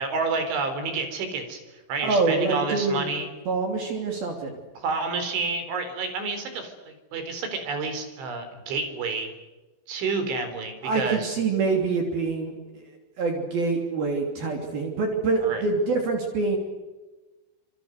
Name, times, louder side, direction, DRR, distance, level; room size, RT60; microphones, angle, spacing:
voice 1, 0.0-1.6 1.9-3.3 4.8-9.3 9.9-11.3 15.4-15.6, right 4 dB, 80° right, 8 dB, 6.5 m, -29 dB
voice 2, 2.0-3.1 3.5-4.6 10.8-12.8 13.2-16.6, right 4 dB, 55° right, 2 dB, 4.7 m, -25 dB
28.0 x 27.0 x 6.7 m, 1.1 s
omnidirectional pair, 5.4 m